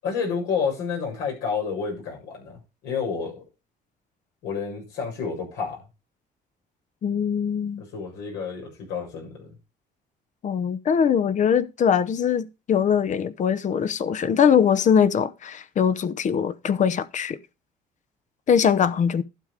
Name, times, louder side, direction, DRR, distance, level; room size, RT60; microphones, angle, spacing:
voice 1, 0.0-3.4 4.4-5.8 7.9-9.5, left 6 dB, 90° left, 7.7 m, -30 dB
voice 2, 7.0-7.8 10.4-17.4 18.5-19.2, left 7 dB, 45° left, 0.9 m, -22 dB
12.0 x 7.4 x 5.1 m
cardioid pair, 110°, 17 cm